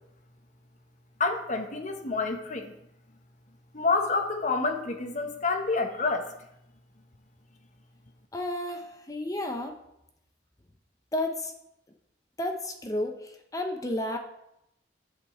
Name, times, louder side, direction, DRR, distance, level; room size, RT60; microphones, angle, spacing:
voice 1, 1.2-2.7 3.7-6.3, left 3 dB, 45° left, 6 dB, 1.0 m, -28 dB
voice 2, 8.3-9.7 11.1-11.5 12.4-14.2, left 1 dB, 20° left, 4 dB, 0.8 m, -32 dB
8.2 x 5.2 x 7.7 m, 0.81 s
head